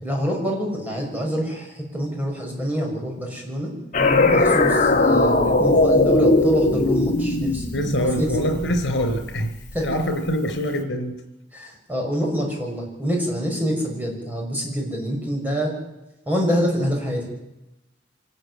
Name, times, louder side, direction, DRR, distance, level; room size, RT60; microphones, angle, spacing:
voice 1, 0.0-3.7 4.3-7.7 8.2-8.3 9.7-9.9 11.5-15.7 16.3-17.3, equal, 10° right, -1 dB, 6.1 m, -26 dB
sound 1, 3.9-9.3, left 2 dB, 45° left, 2.5 m, -19 dB
voice 2, 7.7-9.5 9.8-11.2, equal, 75° left, 8 dB, 4.2 m, -24 dB
25.0 x 13.5 x 9.8 m, 0.97 s
head